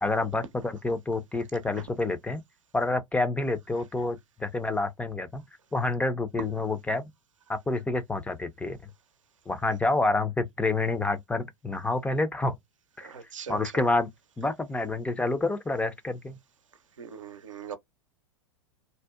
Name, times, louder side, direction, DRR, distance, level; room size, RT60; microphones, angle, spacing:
voice 1, 0.0-2.4 2.7-5.4 5.7-7.0 7.5-8.8 9.5-12.6 13.0-13.1 13.5-14.1 14.4-16.4, left 2 dB, 10° left, 0.3 m, -28 dB
voice 2, 13.0-13.6 17.0-17.8, right 6 dB, 85° right, 0.6 m, -40 dB
2.7 x 2.1 x 2.3 m
hypercardioid pair, 100°, 16 cm